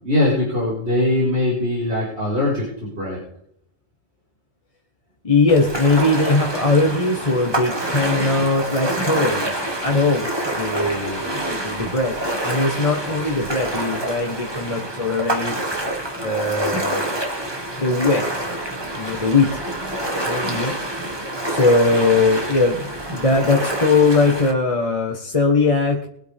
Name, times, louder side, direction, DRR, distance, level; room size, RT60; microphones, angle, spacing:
voice 1, 0.0-3.2 15.5-15.7, left 1 dB, 60° right, -8 dB, 5.3 m, -21 dB
voice 2, 5.2-9.5 9.8-12.1 12.4-15.5 16.2-17.1 17.8-18.2 18.9-19.5 20.2-20.7 21.4-26.1, left 3 dB, 30° left, 0 dB, 1.5 m, -20 dB
Ocean, 5.5-24.5, right 1 dB, 20° right, 2.1 m, -27 dB
22.5 x 9.1 x 3.7 m, 0.71 s
omnidirectional pair, 1.3 m